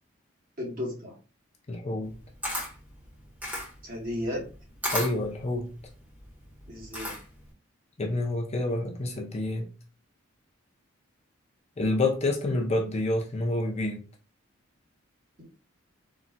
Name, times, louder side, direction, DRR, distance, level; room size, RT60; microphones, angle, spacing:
voice 1, 0.6-1.1 3.8-4.5 6.7-7.2, left 1 dB, 40° right, -2 dB, 1.1 m, -34 dB
voice 2, 1.7-2.1 4.9-5.7 8.0-9.7 11.8-14.0, left 2 dB, 30° left, 0 dB, 0.5 m, -28 dB
Camera, 2.0-7.5, left 1 dB, 10° right, 1.0 m, -35 dB
3.9 x 2.2 x 2.2 m, 0.35 s
head